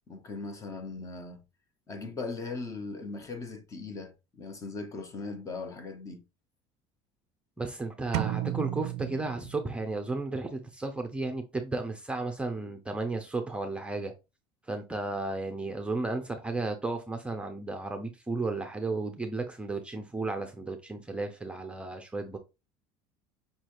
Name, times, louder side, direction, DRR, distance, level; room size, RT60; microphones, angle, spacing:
voice 1, 0.1-1.4 1.9-6.2, left 3 dB, 25° left, 0.8 m, -39 dB
voice 2, 7.6-14.1 14.7-22.4, right 3 dB, 10° right, 0.6 m, -34 dB
sound 1, 8.1-10.0, right 15 dB, 70° right, 0.4 m, -33 dB
5.5 x 3.1 x 2.5 m
cardioid pair, 130°, 12 cm